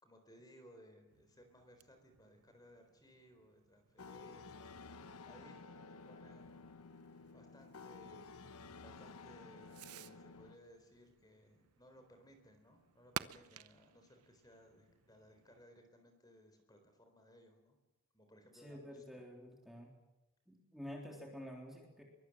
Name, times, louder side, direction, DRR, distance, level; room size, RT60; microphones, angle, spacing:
voice 1, 0.0-4.8 5.2-6.9 7.3-8.3 8.8-17.8 18.1-19.3, equal, 15° left, 6 dB, 4.0 m, -62 dB
Fireworks, 1.1-15.7, right 8 dB, 85° right, 0.8 m, -55 dB
sound 1, 4.0-10.6, left 4 dB, 80° left, 1.0 m, -53 dB
voice 2, 18.5-19.9 20.5-22.0, equal, ahead, -1 dB, 3.6 m, -49 dB
23.5 x 23.0 x 7.5 m, 0.99 s
head